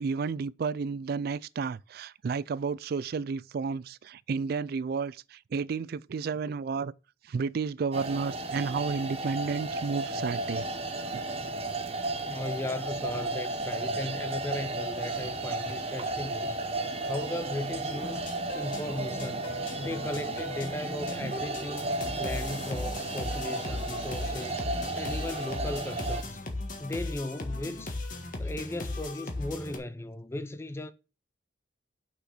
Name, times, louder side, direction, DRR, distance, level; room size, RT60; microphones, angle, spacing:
voice 1, 0.0-6.9 7.2-10.6 11.1-11.2 21.2-21.3, right 5 dB, 55° right, 0.3 m, -32 dB
sound 1, 7.9-26.2, right 2 dB, 30° right, 0.9 m, -34 dB
voice 2, 12.2-18.3 18.5-26.5 26.8-28.0 28.4-30.9, left 1 dB, 15° left, 0.4 m, -37 dB
sound 2, 17.9-29.8, left 2 dB, 45° left, 1.6 m, -38 dB
6.2 x 5.7 x 6.0 m
head